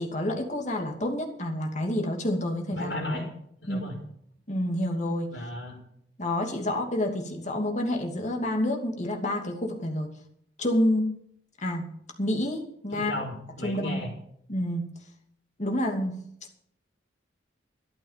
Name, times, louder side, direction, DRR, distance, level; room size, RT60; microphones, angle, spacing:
voice 1, 0.0-2.9 3.7-4.0 4.5-5.3 6.2-10.1 10.6-11.1 11.6-11.9 12.2-13.1 13.6-14.0 14.5-14.8 15.6-16.2, left 1 dB, 40° left, 2 dB, 2.7 m, -28 dB
voice 2, 2.7-3.3 3.6-3.9 5.3-5.8 12.9-14.1, left 1 dB, 55° left, 0 dB, 5.3 m, -34 dB
13.0 x 11.0 x 5.8 m, 0.69 s
head